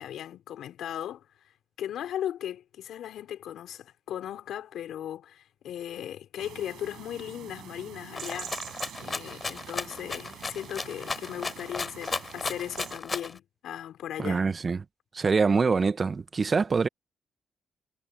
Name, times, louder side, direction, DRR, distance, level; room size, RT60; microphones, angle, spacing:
voice 1, 0.0-1.5 1.8-8.5 9.0-14.4, left 11 dB, 75° left, 4.5 m, -37 dB
sound 1, 6.4-13.0, right 12 dB, 80° right, 6.3 m, -45 dB
Rattle (instrument), 8.1-13.4, left 4 dB, 40° left, 4.9 m, -35 dB
voice 2, 14.2-14.8 15.1-16.9, right 4 dB, 45° right, 1.6 m, -24 dB
supercardioid pair, 50°, 0 cm